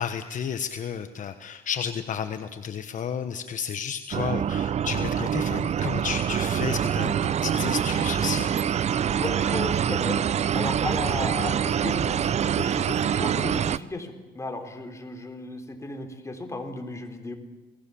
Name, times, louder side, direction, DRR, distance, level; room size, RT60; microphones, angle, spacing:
voice 1, 0.0-8.5, left 7 dB, 50° left, 8 dB, 1.3 m, -32 dB
sound 1, 4.1-13.8, right 8 dB, 40° right, 0.7 m, -25 dB
voice 2, 9.2-10.2 10.5-12.2 12.6-17.3, left 2 dB, 15° left, 4 dB, 3.9 m, -34 dB
28.5 x 20.0 x 7.2 m, 1.2 s
cardioid pair, 110°, 17 cm